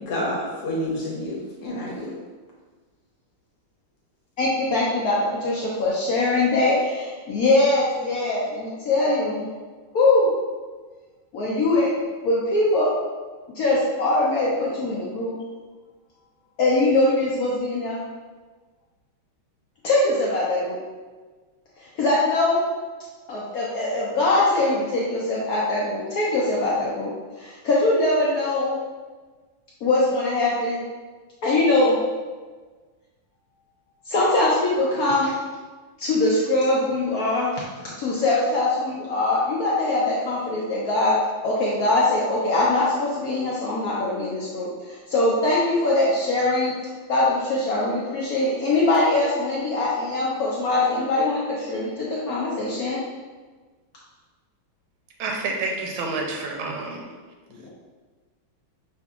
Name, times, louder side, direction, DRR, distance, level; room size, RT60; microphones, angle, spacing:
voice 1, 0.0-2.2, left 1 dB, 65° left, -4 dB, 1.1 m, -29 dB
voice 2, 4.4-9.5 9.9-10.3 11.3-11.9 12.2-12.9 13.5-15.4 16.6-18.1 19.8-20.8 21.8-22.7 23.3-27.1 27.4-28.8 29.8-30.8 31.4-32.0 34.1-35.3 36.0-46.7 47.1-53.0 57.5-57.7, left 2 dB, 80° left, -6 dB, 0.8 m, -22 dB
voice 3, 55.2-57.1, right 3 dB, 85° right, 1 dB, 1.4 m, -28 dB
5.6 x 2.6 x 2.3 m, 1.4 s
omnidirectional pair, 2.2 m